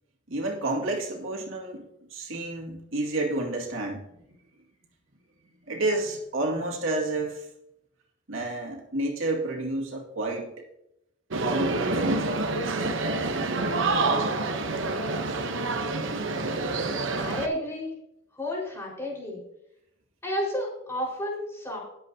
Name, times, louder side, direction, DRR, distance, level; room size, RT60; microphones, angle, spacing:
voice 1, 0.3-1.8 2.1-4.0 5.7-7.5 8.3-10.6 11.4-12.3, right 2 dB, 85° right, 0 dB, 2.3 m, -30 dB
sound 1, 11.3-17.5, right 3 dB, 70° right, 1.0 m, -27 dB
voice 2, 17.2-17.9 18.3-19.4 20.2-21.8, left 1 dB, 15° left, -4 dB, 4.8 m, -31 dB
20.0 x 7.9 x 2.8 m, 0.82 s
head